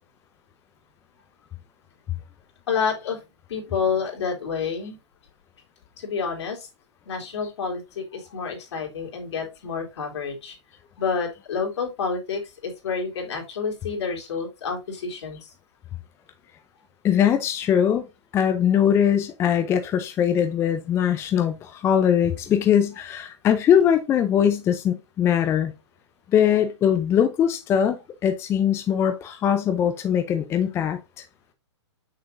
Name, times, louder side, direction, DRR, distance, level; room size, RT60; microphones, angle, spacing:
voice 1, 2.7-3.2 3.5-5.0 6.0-6.7 7.0-10.6 11.0-15.5, left 5 dB, 70° left, 3.0 m, -29 dB
voice 2, 17.0-18.1 18.3-25.7 26.3-31.0, left 9 dB, 15° left, 0.5 m, -21 dB
6.6 x 5.8 x 2.6 m
hypercardioid pair, 135°, 15 cm